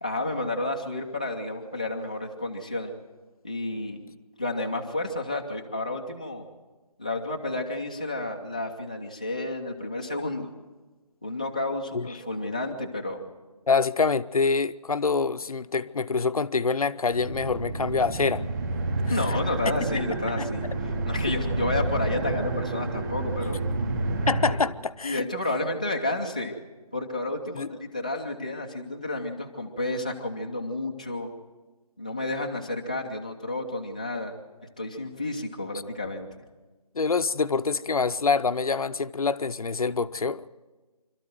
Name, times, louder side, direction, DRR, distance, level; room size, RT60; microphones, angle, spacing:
voice 1, 0.0-2.9 3.4-4.0 4.4-6.4 7.0-10.5 11.2-13.2 19.1-20.7 21.1-23.6 24.5-24.6 25.0-26.6 26.9-31.3 32.0-34.3 34.8-36.3, left 2 dB, 10° left, 0.5 m, -31 dB
voice 2, 13.7-18.5 19.0-19.4 20.4-20.5 24.3-25.3 27.5-27.7 36.9-40.5, left 4 dB, 65° left, 0.7 m, -26 dB
sound 1, 17.1-24.6, right 2 dB, 25° right, 2.5 m, -29 dB
26.0 x 13.0 x 7.7 m
figure-of-eight pair, 175°, 20 cm